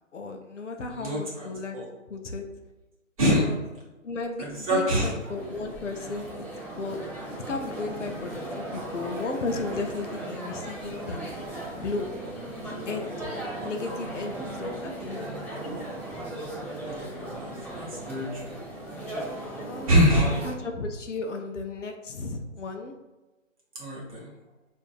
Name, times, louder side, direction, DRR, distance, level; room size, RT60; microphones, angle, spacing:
voice 1, 0.1-1.8 2.1-2.5 3.2-3.6 4.0-6.5 6.8-7.0 7.5-11.3 11.8-12.1 12.6-13.3 13.6-15.7 19.6-19.9 20.4-22.9, left 3 dB, 65° left, 4 dB, 0.6 m, -35 dB
voice 2, 0.9-1.5 1.7-1.9 3.2-3.5 4.4-5.1 15.0-15.4 16.8-17.5 17.8-18.5 19.9-20.4 23.8-24.3, equal, 25° right, -5 dB, 1.0 m, -25 dB
sound 1, 4.5-20.5, right 1 dB, 10° left, 0.6 m, -37 dB
5.0 x 2.6 x 2.5 m, 1.1 s
figure-of-eight pair, 150°, 39 cm